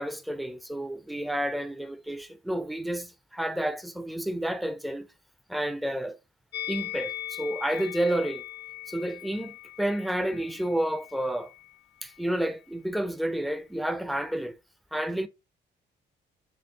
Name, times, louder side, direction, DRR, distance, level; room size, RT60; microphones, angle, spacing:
voice 1, 0.0-5.1 5.5-6.2 6.7-8.4 8.9-11.5 12.0-14.6 14.9-15.3, right 1 dB, ahead, 0.4 m, -30 dB
Musical instrument, 6.5-11.8 12.0-12.2, left 14 dB, 55° left, 0.5 m, -40 dB
4.4 x 3.3 x 2.6 m
cardioid pair, 90°, 20 cm